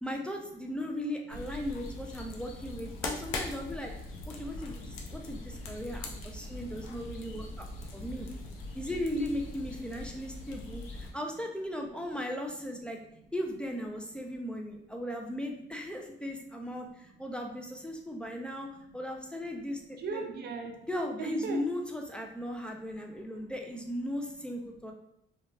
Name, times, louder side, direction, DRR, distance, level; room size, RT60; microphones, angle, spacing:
voice 1, 0.0-3.9 4.3-7.7 7.9-8.3 8.7-13.0 13.3-18.7 18.9-20.2 20.9-24.9, equal, 5° left, 1 dB, 0.4 m, -37 dB
sound 1, 1.3-11.1, left 2 dB, 85° left, 0.5 m, -41 dB
voice 2, 3.7-4.0 4.4-5.2 8.7-8.8 10.1-10.8 11.0-11.2 13.0-13.3 14.0-14.1 14.8-15.0 16.7-19.0 19.9-20.8 21.2-21.6 22.4-23.5 24.1-24.2 24.6-24.9, right 4 dB, 55° right, 4 dB, 0.5 m, -45 dB
2.8 x 2.3 x 2.2 m, 0.80 s
cardioid pair, 90°, 20 cm